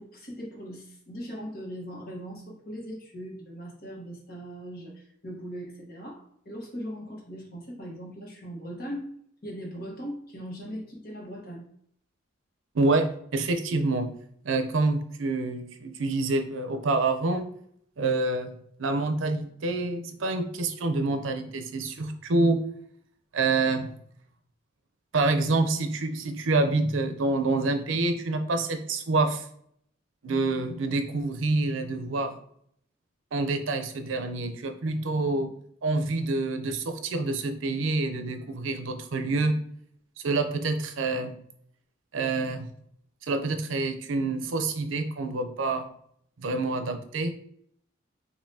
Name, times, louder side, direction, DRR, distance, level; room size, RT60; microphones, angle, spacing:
voice 1, 0.0-9.1 9.4-11.7, equal, 50° left, -2 dB, 1.2 m, -39 dB
voice 2, 12.7-14.1 14.4-17.5 18.0-18.5 18.8-22.6 23.3-23.9 25.1-29.4 30.2-32.3 33.3-35.5 35.8-39.6 40.2-41.3 42.1-42.7 43.3-45.9 46.4-47.4, right 3 dB, 90° right, 7 dB, 0.5 m, -27 dB
5.4 x 2.6 x 2.7 m, 0.67 s
head